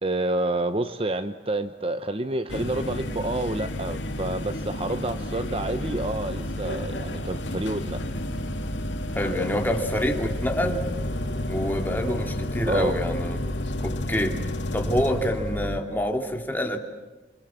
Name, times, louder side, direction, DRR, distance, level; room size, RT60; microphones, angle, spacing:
voice 1, 0.0-8.0 12.7-12.9, right 2 dB, 30° right, 10 dB, 0.9 m, -28 dB
sound 1, 2.5-15.8, left 1 dB, 80° left, 2.5 m, -31 dB
voice 2, 9.1-10.9 11.5-13.5 13.8-14.4 14.7-16.8, equal, 10° left, 3 dB, 2.5 m, -27 dB
28.0 x 26.5 x 7.4 m, 1.2 s
head